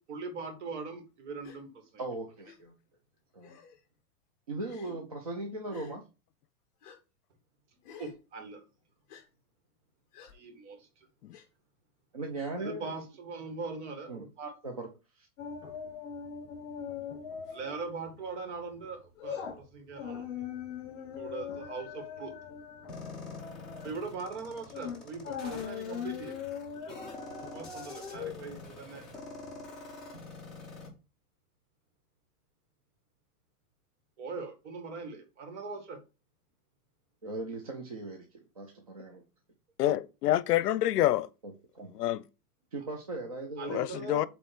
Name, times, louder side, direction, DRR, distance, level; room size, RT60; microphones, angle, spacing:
voice 1, 0.1-2.0 8.0-8.6 10.3-10.9 12.6-14.5 17.5-20.3 21.0-22.4 23.8-26.4 26.7-26.9 27.5-29.0 34.2-36.0 43.6-44.3, right 4 dB, 50° right, 2.0 m, -41 dB
Gasp, 1.4-1.6 2.4-2.6 3.4-3.8 4.6-5.0 5.7-6.0 6.8-7.0 7.8-8.2 9.1-9.2 10.1-10.3 11.3-11.5 12.3-12.6, left 7 dB, 25° left, 1.5 m, -51 dB
voice 2, 2.0-2.7 3.3-3.6 4.5-6.0 12.1-13.1 14.1-14.2 14.6-14.9 15.1-15.3 37.2-39.2 41.7-41.9 42.7-43.8, right 2 dB, 25° right, 0.4 m, -38 dB
sound 1, 15.4-17.8 18.1-18.3 18.7-29.7 30.0-30.1, left 7 dB, 50° left, 3.2 m, -41 dB
sound 2, 22.9-30.9, left 3 dB, ahead, 0.8 m, -46 dB
voice 3, 39.8-41.3 41.9-42.2 43.7-44.3, left 14 dB, 90° left, 0.7 m, -27 dB
8.4 x 3.1 x 4.6 m
supercardioid pair, 175°, 46 cm